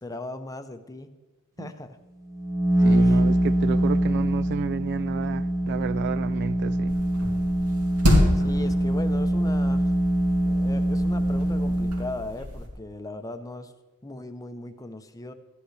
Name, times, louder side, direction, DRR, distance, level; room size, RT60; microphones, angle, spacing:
voice 1, 0.0-1.1 1.6-2.0 2.9-3.2 8.3-9.9 10.4-13.7 14.0-15.3, left 2 dB, 15° left, 0.7 m, -37 dB
sound 1, 2.3-12.2, right 1 dB, 15° right, 1.0 m, -24 dB
voice 2, 2.8-7.0, right 6 dB, 50° right, 0.3 m, -31 dB
sound 2, 6.9-12.7, left 1 dB, 85° right, 2.6 m, -28 dB
14.0 x 10.5 x 3.3 m
head